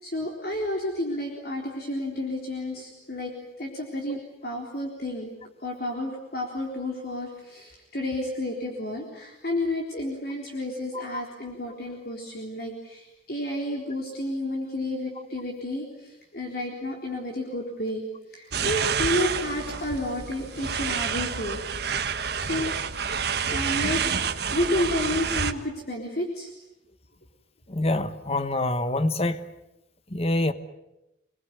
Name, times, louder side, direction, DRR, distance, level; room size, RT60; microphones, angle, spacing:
voice 1, 0.0-5.3 5.6-18.0 18.3-21.6 22.1-22.7 23.5-24.0 24.5-26.5, left 1 dB, 55° left, 3.9 m, -31 dB
sound 1, 18.5-25.5, right 6 dB, 60° right, 1.4 m, -28 dB
voice 2, 27.7-29.4 30.1-30.5, left 2 dB, 30° left, 1.2 m, -26 dB
27.5 x 20.5 x 9.5 m
head